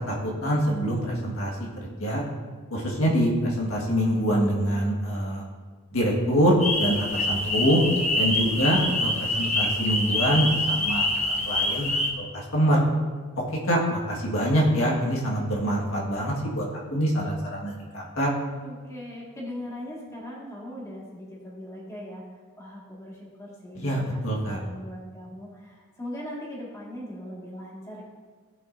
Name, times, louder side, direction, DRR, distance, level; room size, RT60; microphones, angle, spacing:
voice 1, 0.1-2.2 2.7-5.4 5.9-7.8 8.2-12.9 13.6-16.6 16.9-18.3 23.8-24.6, equal, 70° left, -3 dB, 1.7 m, -25 dB
sound 1, 6.6-12.1, left 1 dB, 30° left, 1.0 m, -26 dB
voice 2, 7.4-8.1 18.6-22.2 22.6-28.0, left 1 dB, 15° left, -5 dB, 1.9 m, -40 dB
15.5 x 6.0 x 2.7 m, 1.5 s
head